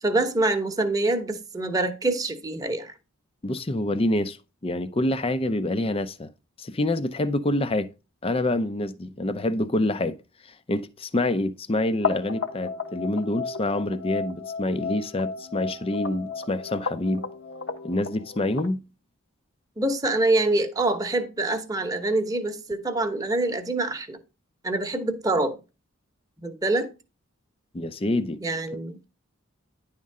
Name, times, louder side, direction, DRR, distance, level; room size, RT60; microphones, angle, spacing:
voice 1, 0.0-2.9 19.8-24.2 24.6-25.6 26.4-26.9 28.4-29.1, right 2 dB, 15° right, 0.9 m, -25 dB
voice 2, 3.4-4.4 4.6-6.3 6.6-7.9 8.2-10.2 10.4-17.3 17.8-18.8 27.7-28.4, left 1 dB, 25° left, 0.5 m, -26 dB
sound 1, 12.0-18.7, left 5 dB, 60° left, 1.0 m, -33 dB
10.5 x 3.7 x 5.3 m
head